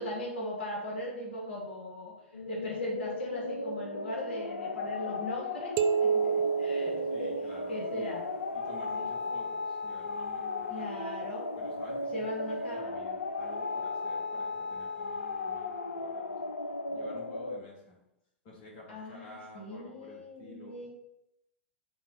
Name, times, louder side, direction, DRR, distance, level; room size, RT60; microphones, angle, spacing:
voice 1, 0.0-2.2 2.5-7.3 7.7-8.2 10.7-11.5 12.1-13.0 18.9-20.9, left 1 dB, 65° left, -2 dB, 2.1 m, -39 dB
sound 1, 2.3-17.6, left 3 dB, 80° left, 0.5 m, -36 dB
sound 2, 5.8-8.2, right 6 dB, 35° right, 0.5 m, -29 dB
voice 2, 7.1-8.2 8.5-10.9 11.6-12.3 12.5-16.5 16.9-18.0 18.4-20.9, left 2 dB, 50° left, -2 dB, 2.0 m, -51 dB
8.0 x 3.9 x 5.6 m, 0.82 s
figure-of-eight pair, 95°, 6 cm